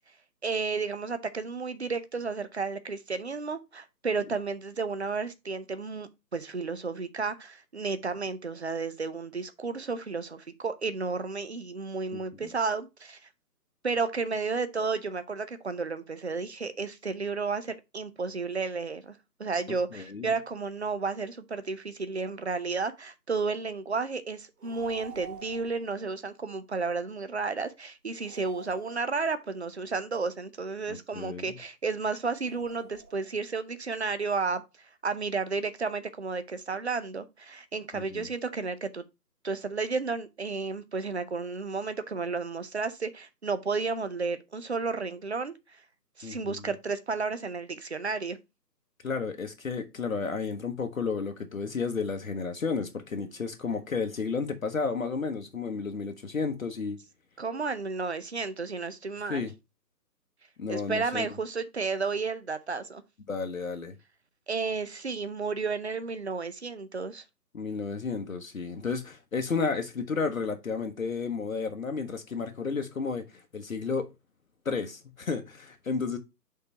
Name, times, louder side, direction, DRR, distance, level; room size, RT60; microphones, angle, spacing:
voice 1, 0.4-13.2 13.8-34.6 35.0-39.0 39.4-45.5 46.2-48.4 57.4-59.5 60.7-63.0 64.5-67.2, right 4 dB, 40° right, 0.6 m, -32 dB
voice 2, 19.9-20.3 30.9-31.6 37.9-38.3 46.2-46.6 49.0-57.0 59.3-59.5 60.6-61.3 63.3-64.0 67.5-74.1 74.6-76.2, left 5 dB, 55° left, 1.0 m, -32 dB
sound 1, 24.6-25.9 28.2-29.6 32.3-33.4, right 4 dB, 65° right, 1.7 m, -48 dB
5.5 x 3.9 x 5.3 m
figure-of-eight pair, 165°, 50 cm